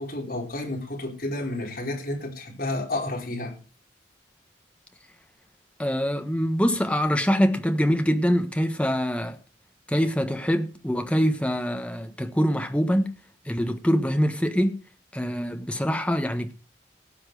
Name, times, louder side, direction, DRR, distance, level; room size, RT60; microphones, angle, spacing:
voice 1, 0.0-3.5, left 1 dB, 50° left, 4.7 m, -31 dB
voice 2, 5.8-9.4 9.9-13.1 13.5-14.8 15.1-16.5, equal, 5° left, 1.3 m, -24 dB
17.5 x 7.2 x 4.9 m
head